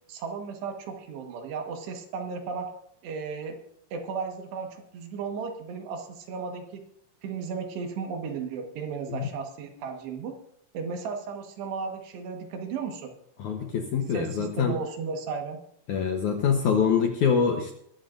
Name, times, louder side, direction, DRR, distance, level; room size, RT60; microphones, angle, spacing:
voice 1, 0.1-2.7 3.0-3.6 3.9-4.7 4.9-6.8 7.2-10.3 10.7-13.1 14.1-15.6, right 5 dB, 85° right, 4 dB, 3.7 m, -35 dB
voice 2, 13.4-14.7 15.9-17.7, left 6 dB, 70° left, 3 dB, 1.9 m, -25 dB
21.5 x 13.0 x 2.6 m, 0.71 s
omnidirectional pair, 4.7 m